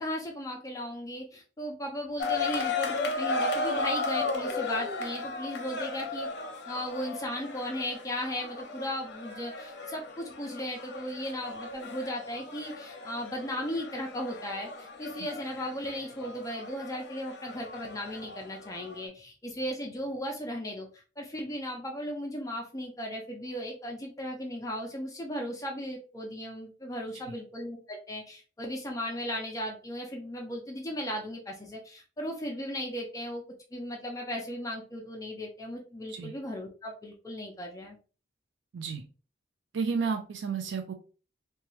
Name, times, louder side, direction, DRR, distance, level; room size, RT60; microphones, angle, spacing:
voice 1, 0.0-6.3 6.7-33.4 33.7-38.0, equal, 20° left, 1 dB, 0.5 m, -36 dB
sound 1, 2.2-19.1, left 3 dB, 70° left, 0.6 m, -35 dB
voice 2, 39.7-40.9, right 5 dB, 80° right, 5 dB, 0.4 m, -31 dB
2.8 x 2.3 x 3.1 m, 0.36 s
head